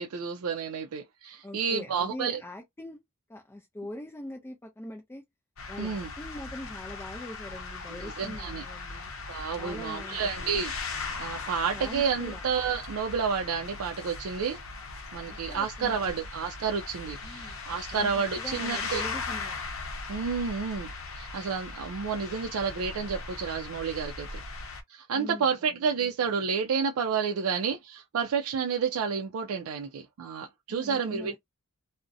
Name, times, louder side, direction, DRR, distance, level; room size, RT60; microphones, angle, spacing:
voice 1, 0.0-2.4 5.8-6.1 8.0-8.6 9.3-10.7 11.2-14.6 15.1-19.0 20.1-20.9 21.2-24.4 24.9-31.4, right 6 dB, 85° right, 0.4 m, -30 dB
voice 2, 1.4-3.0 3.3-5.3 5.7-9.1 9.6-10.5 11.7-12.4 15.2-16.2 17.2-17.6 17.9-19.6 25.1-25.5 30.7-31.4, left 1 dB, 10° left, 0.4 m, -42 dB
sound 1, 5.6-24.8, left 4 dB, 70° left, 0.6 m, -39 dB
2.6 x 2.0 x 2.5 m
head